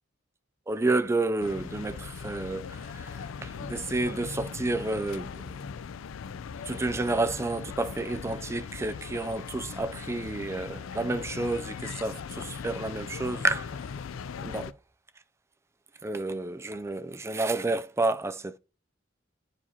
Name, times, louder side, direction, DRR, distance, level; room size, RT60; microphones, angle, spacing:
voice 1, 0.7-5.6 6.7-13.9 14.4-14.7 16.0-18.6, right 2 dB, 15° right, 0.3 m, -30 dB
sound 1, 1.4-14.7, left 6 dB, 80° left, 0.4 m, -39 dB
9.7 x 4.8 x 2.8 m
head